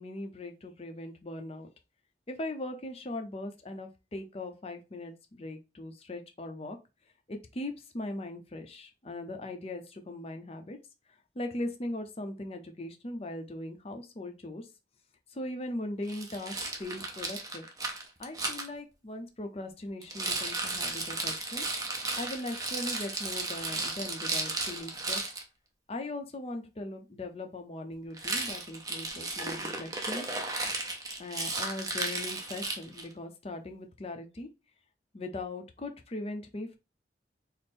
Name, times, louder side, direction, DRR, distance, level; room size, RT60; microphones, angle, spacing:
voice 1, 0.0-1.7 2.3-6.8 7.3-10.8 11.3-14.7 15.3-17.7 18.2-21.6 22.2-25.2 25.9-30.3 31.2-34.5 35.1-36.8, left 1 dB, 35° left, 6 dB, 0.5 m, -39 dB
Rattle, 16.1-18.7 20.0-25.4 28.1-33.1, right 2 dB, 20° right, 0.6 m, -34 dB
3.4 x 2.0 x 4.2 m, 0.28 s
head